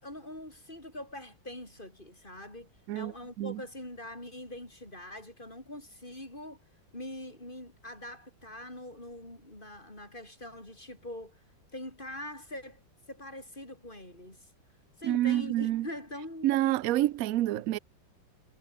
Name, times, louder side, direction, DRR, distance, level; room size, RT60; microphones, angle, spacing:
voice 1, 0.0-6.6 6.9-11.4 11.7-12.8 13.1-14.5 15.0-16.8 17.5-17.6, left 1 dB, 25° left, 7.9 m, -43 dB
voice 2, 2.9-3.6 15.0-15.9 16.4-17.8, right 14 dB, 75° right, 0.8 m, -28 dB
omnidirectional pair, 2.1 m